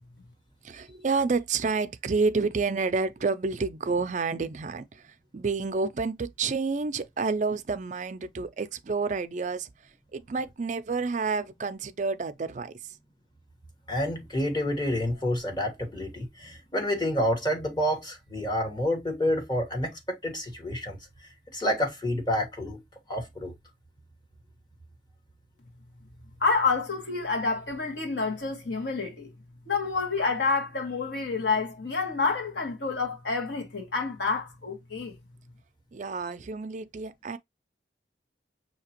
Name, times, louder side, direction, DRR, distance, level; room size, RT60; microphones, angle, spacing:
voice 1, 0.6-13.0 35.9-37.4, right 4 dB, 40° right, 0.4 m, -29 dB
voice 2, 13.9-21.0 21.5-22.8 23.1-23.5, equal, 25° left, 1.3 m, -28 dB
voice 3, 26.4-29.3 29.7-35.1, left 4 dB, 70° left, 1.5 m, -28 dB
5.7 x 2.8 x 2.9 m
head